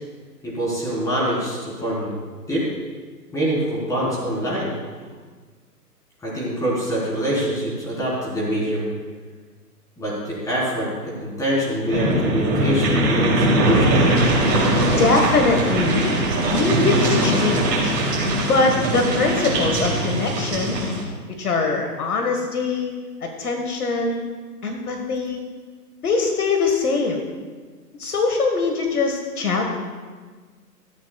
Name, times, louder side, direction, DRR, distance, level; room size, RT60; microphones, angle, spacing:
voice 1, 0.4-2.1 2.5-2.6 3.3-4.7 6.2-8.9 10.0-14.0, equal, 5° left, -7 dB, 4.1 m, -25 dB
sound 1, 11.9-21.0, right 1 dB, 25° right, 3.1 m, -20 dB
voice 2, 15.0-16.1 16.5-18.0 18.4-20.8 21.4-22.9 23.2-24.3 24.6-25.4 26.0-27.2 28.0-29.6, left 3 dB, 65° left, 3 dB, 1.8 m, -22 dB
17.0 x 14.0 x 2.4 m, 1.5 s
hypercardioid pair, 140°, 49 cm